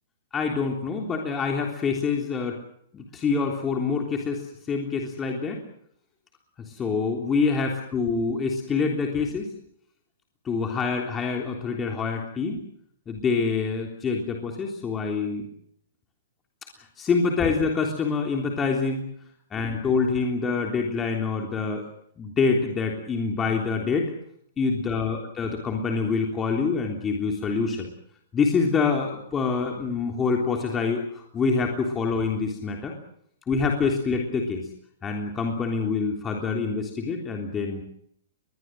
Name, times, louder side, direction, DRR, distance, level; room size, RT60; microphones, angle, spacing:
voice 1, 0.3-2.6 2.9-4.4 4.7-5.6 6.6-9.5 10.4-12.6 13.1-15.5 16.8-19.0 19.5-21.8 22.2-24.1 24.6-27.9 28.3-32.9 33.5-34.7 35.0-37.8, left 4 dB, 15° left, 1 dB, 3.5 m, -26 dB
21.5 x 21.5 x 7.8 m, 0.70 s
hypercardioid pair, 140°, 0 cm